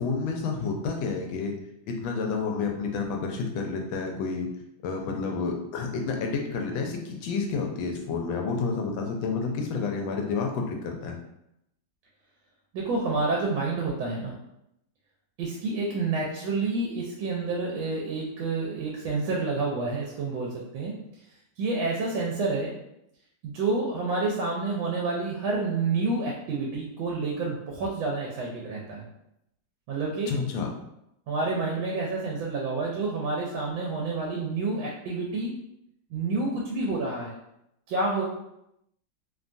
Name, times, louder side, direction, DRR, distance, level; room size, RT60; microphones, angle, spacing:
voice 1, 0.0-1.5 1.9-4.5 4.8-11.2 30.3-30.7, left 4 dB, 85° left, 2 dB, 1.3 m, -30 dB
voice 2, 12.7-14.4 15.4-21.0 21.6-22.8 23.4-29.0 29.9-30.3 31.3-35.6 36.1-37.4 37.9-38.2, right 3 dB, 85° right, -2 dB, 1.3 m, -29 dB
3.3 x 2.2 x 2.5 m, 0.81 s
omnidirectional pair, 2.1 m